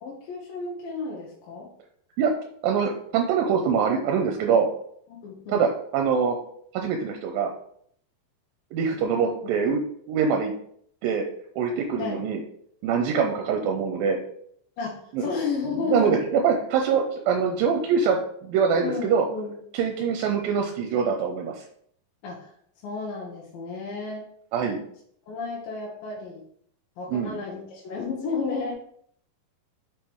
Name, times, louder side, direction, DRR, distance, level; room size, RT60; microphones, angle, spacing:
voice 1, 0.0-1.7 5.1-5.7 9.4-9.5 12.0-12.3 14.8-16.2 18.8-19.5 22.2-22.5 22.8-24.2 25.3-26.4 27.0-28.7, left 4 dB, 75° left, -3 dB, 2.8 m, -32 dB
voice 2, 2.6-4.7 5.5-6.4 6.7-7.5 8.7-9.8 10.1-10.5 11.0-11.3 11.6-12.4 12.8-14.2 15.1-15.3 15.9-19.3 19.7-21.6 24.5-24.8 27.1-27.4, right 6 dB, 80° right, 3 dB, 2.3 m, -24 dB
6.5 x 3.7 x 4.6 m, 0.64 s
omnidirectional pair, 4.3 m